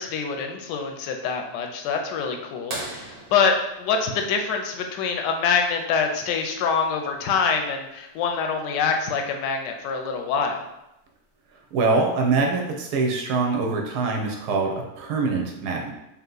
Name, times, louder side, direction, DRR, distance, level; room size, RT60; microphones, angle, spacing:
voice 1, 0.0-10.6, left 5 dB, 85° left, 4 dB, 1.2 m, -25 dB
sound 1, 2.7-5.1 7.1-7.2 9.4-9.5 11.2-11.5 12.3-12.4, right 2 dB, 45° right, 0.8 m, -38 dB
voice 2, 11.7-15.9, right 3 dB, 75° right, 1 dB, 1.3 m, -24 dB
3.5 x 2.8 x 3.8 m, 0.89 s
omnidirectional pair, 1.8 m